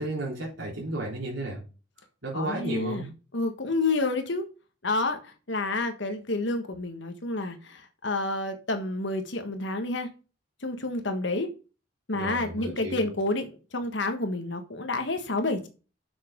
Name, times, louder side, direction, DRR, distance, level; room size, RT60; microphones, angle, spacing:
voice 1, 0.0-1.6 2.2-3.1 12.1-13.1, right 1 dB, 75° right, -4 dB, 3.7 m, -33 dB
voice 2, 2.3-4.5 4.8-10.1 10.6-11.5 12.1-15.7, left 2 dB, 65° left, 6 dB, 1.5 m, -29 dB
7.7 x 6.5 x 5.2 m, 0.33 s
head